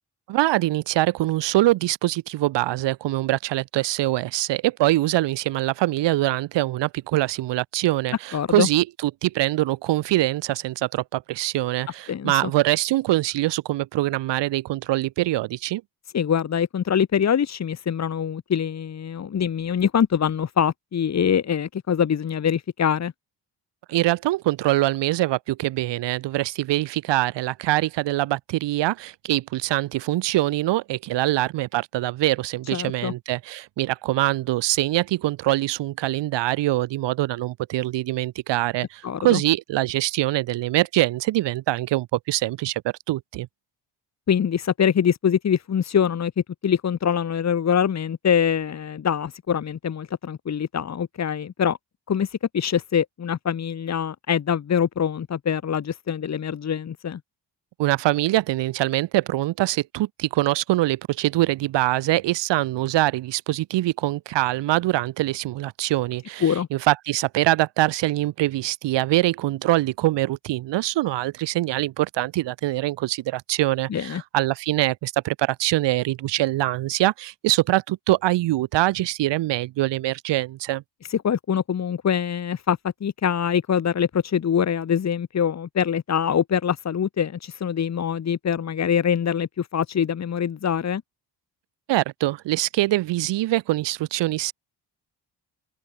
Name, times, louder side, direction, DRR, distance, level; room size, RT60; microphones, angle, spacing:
voice 1, 0.3-15.8 23.9-42.8 43.1-43.5 57.8-80.8 91.9-94.5, right 16 dB, 85° right, 1.2 m, -23 dB
voice 2, 8.3-8.7 12.1-12.5 16.1-23.1 32.7-33.1 39.0-39.4 44.3-51.8 52.1-57.2 66.4-66.7 73.9-74.2 81.1-91.0, left 8 dB, 40° left, 2.6 m, -24 dB
cardioid pair, 155°, 42 cm